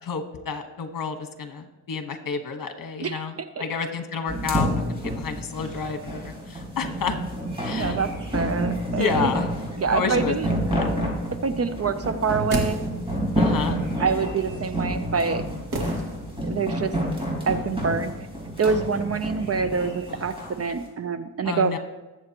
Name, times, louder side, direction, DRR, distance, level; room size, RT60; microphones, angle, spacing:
voice 1, 0.0-7.2 7.6-8.0 9.0-9.5 9.9-10.3 10.7-10.9 13.4-13.8 21.4-21.8, left 5 dB, 65° left, 6 dB, 1.4 m, -30 dB
sound 1, 4.3-20.5, equal, 15° right, 4.4 m, -28 dB
voice 2, 7.6-9.3 9.8-10.5 11.4-12.8 14.0-15.4 16.4-17.0 17.5-18.1 18.6-21.8, right 5 dB, 45° right, 10 dB, 0.6 m, -26 dB
sound 2, 12.1-13.3 15.7-16.6 16.9-17.0, right 2 dB, 65° right, 2.3 m, -32 dB
20.5 x 7.9 x 3.0 m, 1.2 s
wide cardioid pair, 120°, 36 cm